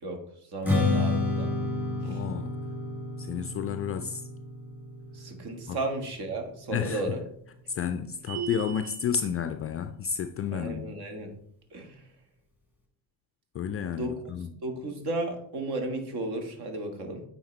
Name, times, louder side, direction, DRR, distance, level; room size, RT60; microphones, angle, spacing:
voice 1, 0.0-1.5 2.0-2.2 5.1-7.2 10.5-11.3 11.7-12.1 13.9-17.2, right 2 dB, 50° right, 1.8 m, -34 dB
Strum, 0.6-6.9, left 3 dB, 5° right, 2.3 m, -31 dB
voice 2, 2.0-2.6 3.2-4.3 5.7-5.8 6.7-7.0 7.7-10.9 13.5-14.5, left 7 dB, 30° left, 0.4 m, -31 dB
sound 1, 8.3-9.1, right 7 dB, 75° right, 0.9 m, -37 dB
9.0 x 4.3 x 3.3 m
hypercardioid pair, 60°, 50 cm